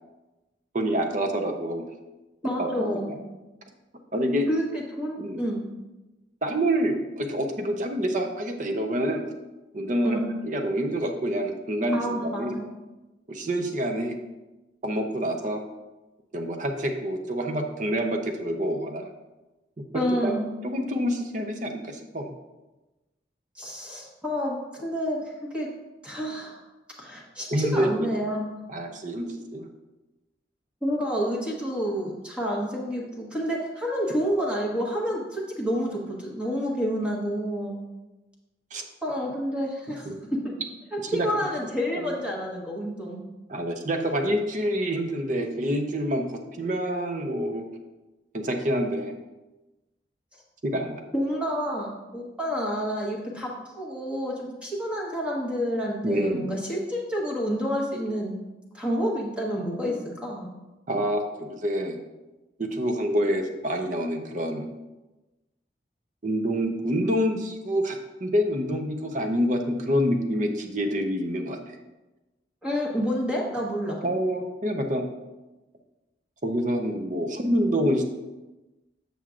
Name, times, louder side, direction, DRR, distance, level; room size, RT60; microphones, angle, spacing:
voice 1, 0.7-1.8 2.6-3.2 4.1-4.5 5.2-5.4 6.4-9.3 9.7-12.5 13.3-14.2 14.8-15.6 16.3-19.1 19.8-20.4 20.6-22.3 27.5-28.1 28.7-29.6 38.7-38.8 40.1-40.2 41.0-41.3 41.9-42.2 43.5-47.7 48.3-49.1 50.6-51.0 56.0-56.5 60.9-62.0 62.6-64.7 66.2-71.8 74.0-75.0 76.4-78.1, equal, 45° right, 4 dB, 0.7 m, -27 dB
voice 2, 2.4-3.1 4.5-5.6 10.0-10.2 11.9-12.7 19.9-20.4 23.5-25.7 26.0-26.6 27.0-28.5 30.8-37.8 39.0-40.5 41.1-43.2 51.1-58.3 58.7-60.5 72.6-74.0, equal, 5° right, -4 dB, 1.2 m, -29 dB
7.5 x 6.9 x 2.5 m, 1.1 s
head